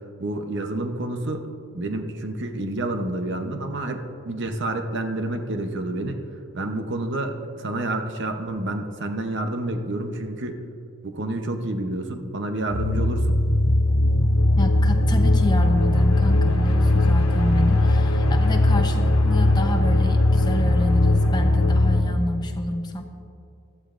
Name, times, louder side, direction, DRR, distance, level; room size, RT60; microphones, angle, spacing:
voice 1, 0.2-1.5 1.7-6.2 6.5-10.6 11.0-13.4, right 1 dB, 55° right, 5 dB, 0.9 m, -29 dB
sound 1, 12.7-22.0, left 1 dB, 85° left, 1.4 m, -19 dB
voice 2, 14.6-23.0, left 1 dB, 20° left, 4 dB, 0.8 m, -28 dB
15.0 x 12.5 x 2.6 m, 2.6 s
head